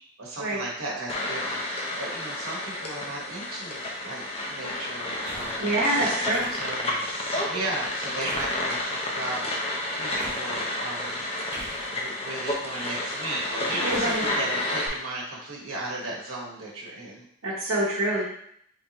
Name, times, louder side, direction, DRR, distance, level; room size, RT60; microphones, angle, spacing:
voice 1, 0.2-6.1 6.5-7.0 7.3-9.4 10.0-11.2 11.8-17.2, right 2 dB, 80° right, -4 dB, 1.2 m, -36 dB
sound 1, 1.1-14.9, left 1 dB, 25° left, 0.6 m, -30 dB
sound 2, 5.2-5.6 6.3-6.9 8.2-8.7 10.2-10.5 11.5-12.4 13.8-14.9, right 1 dB, 35° right, 1.4 m, -39 dB
voice 2, 5.6-6.5 13.8-14.2 17.4-18.2, right 1 dB, 65° right, -7 dB, 1.1 m, -25 dB
3.9 x 3.5 x 2.9 m, 0.67 s
head